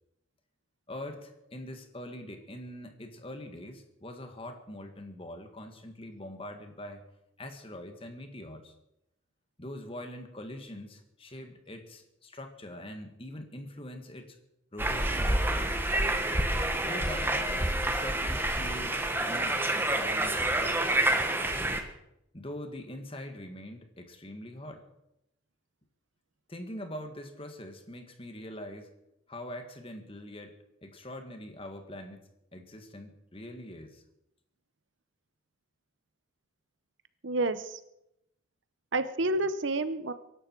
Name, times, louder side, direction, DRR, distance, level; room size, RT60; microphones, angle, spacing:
voice 1, 0.9-7.0 7.4-8.7 9.6-14.4 14.7-15.8 16.8-17.6 17.8-20.9 22.3-24.9 26.5-28.9 29.3-30.5 30.8-32.2 32.5-34.0, left 1 dB, 25° left, 6 dB, 1.8 m, -43 dB
sound 1, 14.8-21.8, right 1 dB, 10° right, 1.2 m, -28 dB
voice 2, 37.2-37.8 38.9-40.1, right 2 dB, 65° right, 13 dB, 0.8 m, -29 dB
23.0 x 12.0 x 4.6 m, 0.84 s
head